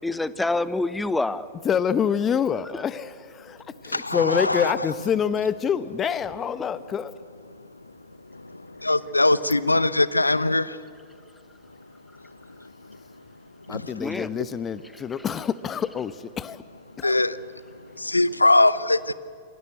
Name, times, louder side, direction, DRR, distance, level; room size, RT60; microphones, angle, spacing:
voice 1, 0.0-1.5 2.7-2.8 6.6-6.7 14.0-14.3 14.9-15.3, left 2 dB, 5° left, 15 dB, 1.1 m, -27 dB
voice 2, 1.6-7.1 13.7-16.6 17.0-17.1, left 7 dB, 25° left, 16 dB, 0.9 m, -26 dB
voice 3, 4.1-4.7 8.9-10.6 17.0-17.3 18.1-19.1, left 2 dB, 85° left, 17 dB, 0.9 m, -20 dB
27.5 x 24.0 x 8.3 m, 2.1 s
figure-of-eight pair, 95°, 0 cm